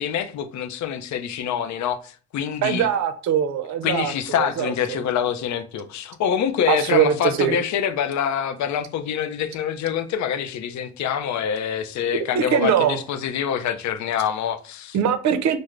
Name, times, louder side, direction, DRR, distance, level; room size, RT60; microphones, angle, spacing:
voice 1, 0.0-2.9 3.8-15.0, left 8 dB, 70° left, 0.5 m, -25 dB
voice 2, 2.6-5.0 6.7-7.6 12.3-13.0 14.9-15.6, right 8 dB, 65° right, 0.5 m, -22 dB
3.6 x 2.0 x 3.2 m
cardioid pair, 90°, 30 cm